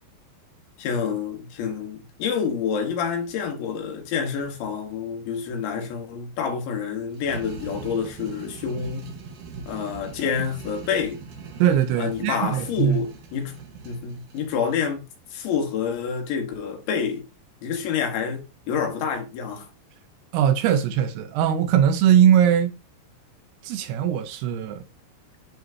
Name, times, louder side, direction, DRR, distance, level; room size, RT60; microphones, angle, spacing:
voice 1, 0.8-9.1 9.7-11.2 12.0-13.6 13.9-15.0 15.3-17.2 17.6-19.7, left 6 dB, 90° left, 3.7 m, -28 dB
sound 1, 7.1-14.5, right 5 dB, 60° right, 2.3 m, -41 dB
voice 2, 11.6-13.0 20.3-22.7 23.6-24.8, right 9 dB, 75° right, 2.7 m, -20 dB
10.5 x 4.0 x 2.6 m
omnidirectional pair, 5.0 m